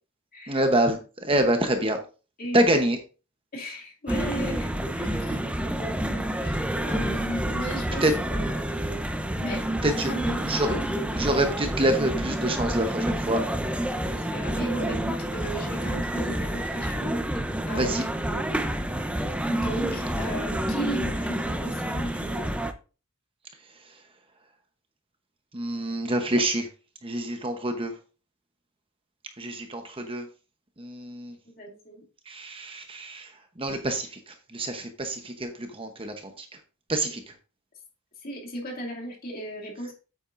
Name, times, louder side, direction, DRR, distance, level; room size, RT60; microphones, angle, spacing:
voice 1, 0.5-2.0 2.5-3.0 5.3-5.5 8.0-8.1 9.8-10.1 10.5-10.8 11.2-13.4 17.7-18.0 25.5-26.7 27.0-27.9 29.4-30.2 30.8-31.3 32.3-33.3 33.6-34.1 34.5-36.5 36.9-37.2, right 1 dB, 25° right, 6 dB, 0.9 m, -26 dB
voice 2, 2.4-2.8 3.5-5.4 5.8-9.0 9.4-9.7 10.1-10.9 14.0-18.6 19.5-22.5 31.6-32.0 37.0-37.1 38.2-39.9, right 1 dB, 40° left, -1 dB, 2.6 m, -36 dB
sound 1, 4.1-22.7, right 1 dB, 5° right, 0.6 m, -29 dB
8.7 x 8.7 x 2.6 m, 0.34 s
head